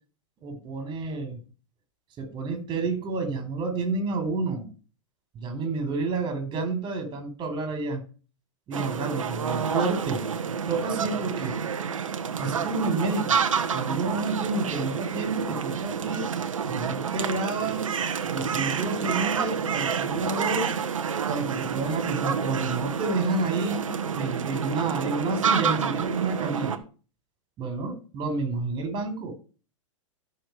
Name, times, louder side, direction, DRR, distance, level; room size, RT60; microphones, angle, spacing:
voice 1, 0.4-1.4 2.2-4.7 5.3-8.0 8.7-11.5 12.4-13.4 13.7-16.3 16.7-17.9 18.2-20.7 21.3-26.8 27.6-29.3, right 3 dB, 25° right, 7 dB, 4.2 m, -30 dB
sound 1, 8.7-26.8, right 6 dB, 80° right, 1.3 m, -29 dB
13.5 x 6.5 x 4.7 m, 0.36 s
hypercardioid pair, 110°, 17 cm